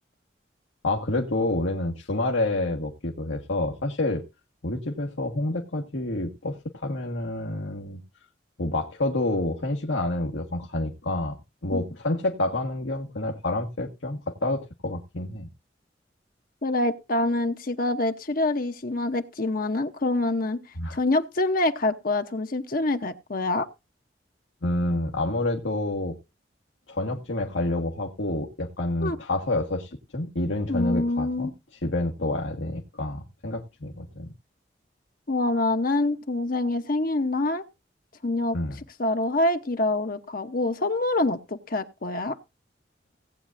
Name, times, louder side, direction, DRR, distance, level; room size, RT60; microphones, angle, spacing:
voice 1, 0.8-4.2 4.6-8.0 8.6-11.4 11.6-15.5 20.8-21.0 24.6-26.1 26.9-34.3 38.5-38.8, left 2 dB, 90° left, 1.6 m, -28 dB
voice 2, 16.6-20.6 20.9-23.7 29.0-29.2 30.7-31.5 35.3-37.6 38.2-38.6 39.0-42.4, left 2 dB, 50° left, 0.8 m, -26 dB
18.0 x 8.6 x 2.6 m
head